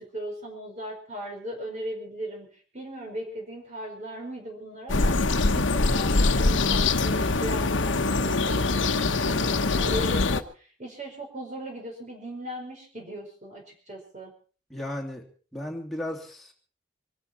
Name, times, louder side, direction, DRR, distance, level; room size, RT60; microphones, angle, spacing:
voice 1, 0.0-2.5 2.7-14.3, equal, 40° right, 1 dB, 5.0 m, -38 dB
sound 1, 4.9-10.4, left 3 dB, 90° left, 1.1 m, -23 dB
voice 2, 14.7-15.2 15.5-16.5, left 1 dB, ahead, -1 dB, 2.9 m, -34 dB
25.0 x 13.0 x 4.5 m, 0.40 s
head